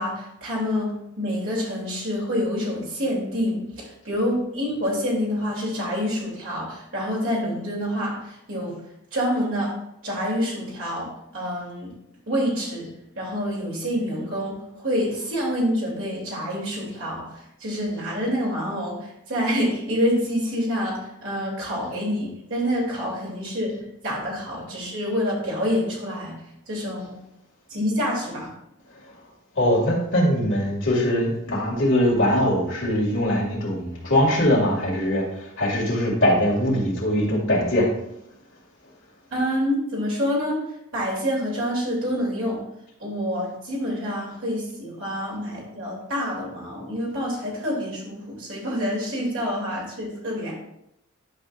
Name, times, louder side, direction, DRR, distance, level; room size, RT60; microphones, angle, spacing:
voice 1, 0.0-8.8 9.1-9.7 10.0-11.9 12.3-12.9 13.2-23.8 24.0-26.4 26.7-27.2 27.7-28.5 39.3-40.6 40.9-42.6 43.0-50.5, equal, 60° right, -4 dB, 3.0 m, -27 dB
voice 2, 29.6-35.2 35.6-37.9, left 1 dB, 60° left, -3 dB, 2.3 m, -21 dB
10.5 x 5.4 x 2.5 m, 0.81 s
head